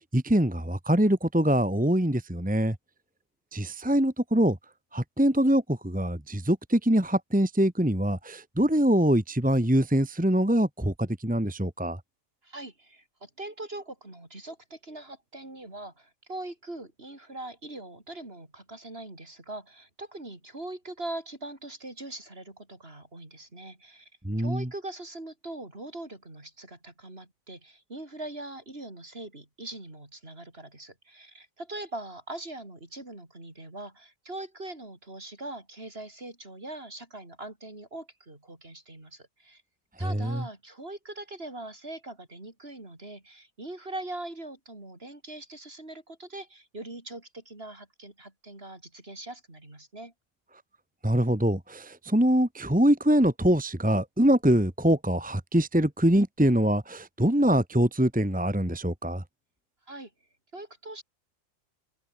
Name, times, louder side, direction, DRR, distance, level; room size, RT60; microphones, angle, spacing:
voice 1, 0.0-2.7 3.5-4.6 4.9-12.0 24.2-24.7 40.1-40.4 51.0-59.2, right 1 dB, 5° right, 1.7 m, -24 dB
voice 2, 12.4-24.1 24.4-39.6 40.0-50.1 59.9-60.1 60.5-61.0, right 2 dB, 45° right, 5.1 m, -41 dB
open air
omnidirectional pair, 1.4 m